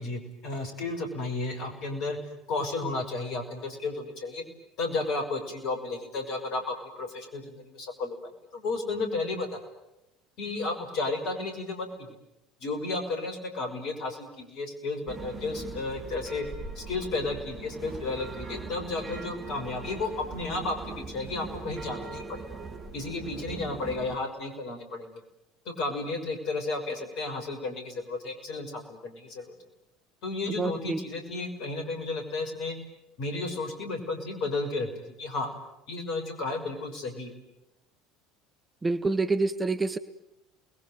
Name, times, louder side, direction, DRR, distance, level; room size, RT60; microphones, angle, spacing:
voice 1, 0.0-2.2 2.5-4.4 4.8-9.6 10.4-12.1 12.6-16.4 16.8-22.6 22.9-25.2 25.7-29.6 30.2-32.8 33.2-35.5 35.9-37.3, left 3 dB, 50° left, 6 dB, 6.0 m, -33 dB
sound 1, 15.1-24.2, right 4 dB, 30° right, 3.3 m, -40 dB
voice 2, 30.6-31.0 38.8-40.0, right 3 dB, 15° right, 10 dB, 1.4 m, -27 dB
29.0 x 21.0 x 9.4 m, 0.88 s
figure-of-eight pair, 65°, 0 cm